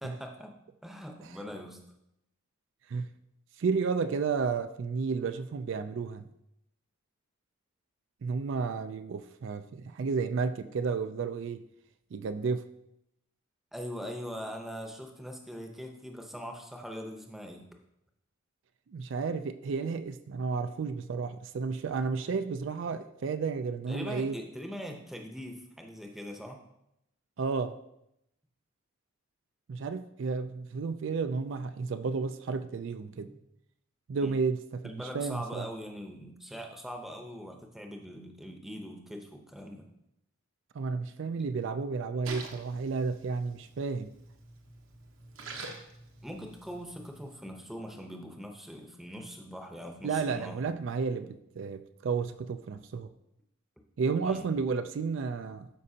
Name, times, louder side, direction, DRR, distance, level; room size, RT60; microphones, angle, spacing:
voice 1, 0.0-0.6 0.8-1.8 13.7-17.7 23.9-26.6 33.2-33.4 34.2-34.3 34.8-39.9 46.2-50.6 54.2-54.5, equal, ahead, 2 dB, 0.7 m, -42 dB
voice 2, 3.6-6.3 8.2-11.7 12.1-12.7 18.9-24.4 27.4-27.8 29.7-33.3 34.1-35.6 40.7-44.1 50.0-53.1 54.0-55.7, right 5 dB, 60° right, 10 dB, 0.4 m, -32 dB
Splash splatter, 42.2-47.3, right 3 dB, 75° right, 1.0 m, -47 dB
12.5 x 5.3 x 2.8 m, 0.81 s
head